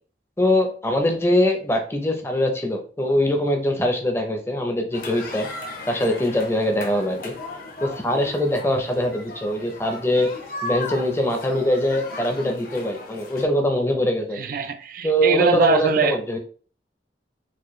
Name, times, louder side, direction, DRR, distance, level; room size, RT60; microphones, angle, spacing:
voice 1, 0.4-5.5 5.9-7.3 7.8-10.3 10.6-14.4 15.0-16.4, left 1 dB, 15° left, 0.5 m, -22 dB
sound 1, 4.9-13.4, left 2 dB, 55° left, 0.7 m, -36 dB
voice 2, 14.3-16.2, right 5 dB, 50° right, 0.3 m, -22 dB
4.4 x 2.2 x 3.0 m
head